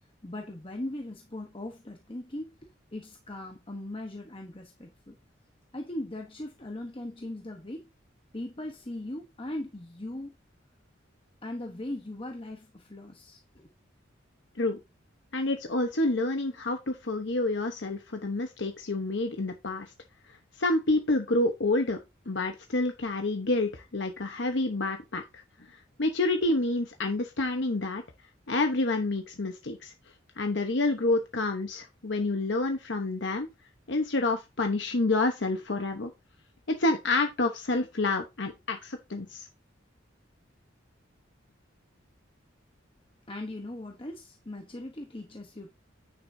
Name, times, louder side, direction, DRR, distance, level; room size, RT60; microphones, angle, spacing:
voice 1, 0.2-5.2 5.7-7.9 8.3-10.3 11.4-13.7 43.3-45.7, left 1 dB, 25° left, 1.0 m, -39 dB
voice 2, 15.3-19.9 20.6-22.0 22.3-25.2 26.0-28.0 28.5-29.9 30.4-33.5 33.9-36.1 36.7-39.5, left 2 dB, 65° left, 1.0 m, -28 dB
9.6 x 5.9 x 2.7 m
head